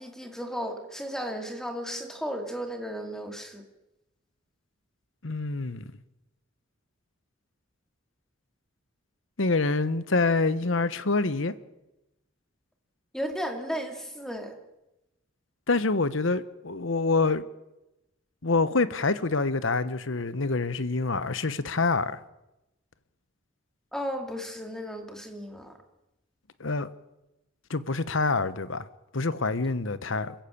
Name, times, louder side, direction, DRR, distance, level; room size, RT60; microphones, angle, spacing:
voice 1, 0.0-3.6 13.1-14.6 23.9-25.7, equal, ahead, 2.5 m, -34 dB
voice 2, 5.2-5.9 9.4-11.5 15.7-17.4 18.4-22.2 26.6-26.9 27.7-28.9 29.1-30.3, left 3 dB, 75° left, 1.1 m, -26 dB
26.5 x 15.0 x 8.7 m
head